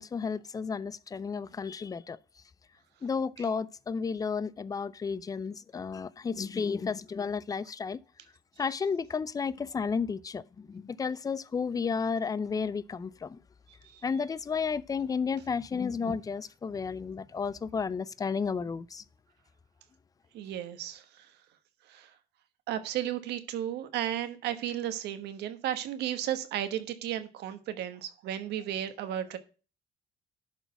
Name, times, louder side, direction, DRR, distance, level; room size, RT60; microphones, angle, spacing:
voice 1, 0.0-2.2 3.0-8.0 8.6-13.4 14.0-19.0, left 5 dB, 20° left, 0.5 m, -32 dB
voice 2, 20.3-21.3 21.9-22.1 22.7-29.4, right 11 dB, 80° right, 1.2 m, -34 dB
11.0 x 4.0 x 5.9 m
cardioid pair, 110°, 17 cm